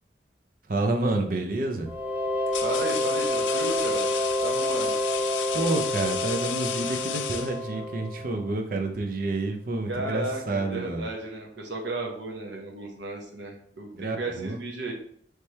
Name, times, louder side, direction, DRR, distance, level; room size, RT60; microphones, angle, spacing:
voice 1, 0.7-1.9 5.5-11.1 13.9-14.6, right 2 dB, 50° right, 4 dB, 0.6 m, -29 dB
sound 1, 0.9-1.2 2.0-8.0, left 9 dB, 90° left, 0.4 m, -35 dB
sound 2, 1.9-8.5, left 1 dB, 10° right, 0.3 m, -28 dB
voice 2, 2.6-4.1 4.4-5.0 9.9-14.9, right 2 dB, 80° right, 0 dB, 1.1 m, -34 dB
3.3 x 3.3 x 4.2 m, 0.64 s
head